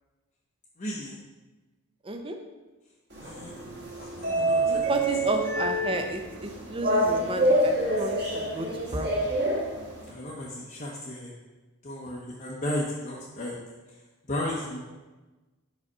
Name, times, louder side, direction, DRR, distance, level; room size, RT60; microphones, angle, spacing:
voice 1, 0.8-1.1 3.2-3.5 4.0-4.8 10.1-11.3 11.8-13.5 14.3-14.8, left 1 dB, 35° left, -4 dB, 0.7 m, -34 dB
voice 2, 2.0-2.4 4.7-9.3, right 2 dB, 25° right, 5 dB, 0.5 m, -32 dB
sound 1, 3.1-10.1, right 1 dB, 50° right, 1.8 m, -27 dB
5.0 x 4.9 x 5.4 m, 1.2 s
head